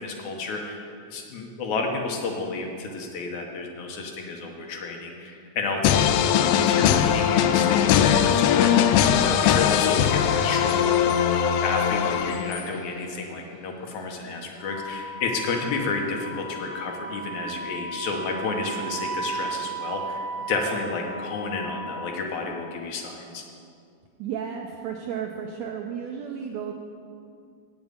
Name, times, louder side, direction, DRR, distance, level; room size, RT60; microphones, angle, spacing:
voice 1, 0.0-11.1 11.6-23.4, left 3 dB, 70° left, 1 dB, 2.2 m, -31 dB
sound 1, 5.8-12.8, left 9 dB, 90° left, 2.2 m, -20 dB
Wind instrument woodwind instrument, 14.6-22.8, right 2 dB, 25° left, 2.4 m, -36 dB
voice 2, 24.2-26.7, right 7 dB, 90° right, 2 dB, 1.5 m, -33 dB
8.8 x 7.2 x 8.0 m, 2.4 s
omnidirectional pair, 3.9 m